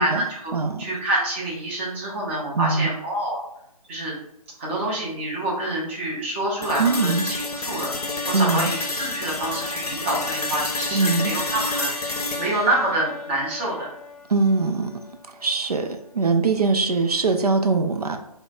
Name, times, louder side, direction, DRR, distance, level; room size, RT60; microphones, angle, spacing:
voice 1, 0.0-0.5 0.8-3.4 3.9-4.1 4.6-7.9 8.3-13.9, right 1 dB, 20° right, -4 dB, 0.6 m, -27 dB
voice 2, 0.5-0.9 2.6-2.9 6.8-7.3 8.3-8.7 10.9-11.3 14.3-14.9 15.3-18.2, right 4 dB, 80° right, 6 dB, 0.4 m, -22 dB
sound 1, 6.6-14.6, left 2 dB, 80° left, 0.6 m, -30 dB
4.5 x 2.1 x 2.3 m, 0.79 s
figure-of-eight pair, 145°, 19 cm